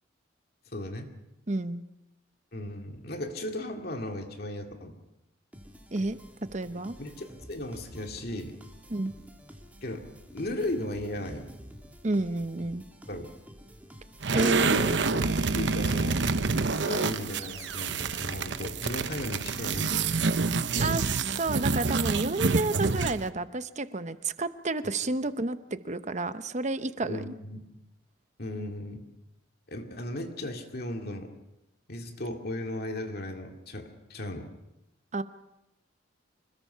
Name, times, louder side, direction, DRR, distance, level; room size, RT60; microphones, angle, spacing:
voice 1, 0.7-1.1 2.5-5.0 7.0-8.6 9.8-10.0 10.3-11.5 13.1-13.3 14.3-16.2 16.7-20.1 20.8-21.0 27.0-27.6 28.4-29.1 29.7-31.3 31.9-34.5, left 1 dB, 55° left, 4 dB, 2.3 m, -36 dB
voice 2, 1.5-1.8 5.9-6.2 6.5-6.9 8.9-9.1 12.0-12.9 14.3-14.9 20.8-27.3 35.1-35.2, right 2 dB, 40° right, 12 dB, 0.9 m, -30 dB
sound 1, 5.5-20.1, equal, 10° right, 2.3 m, -49 dB
sound 2, 14.2-23.3, right 4 dB, 65° right, 0.9 m, -27 dB
26.0 x 21.0 x 5.7 m, 0.92 s
head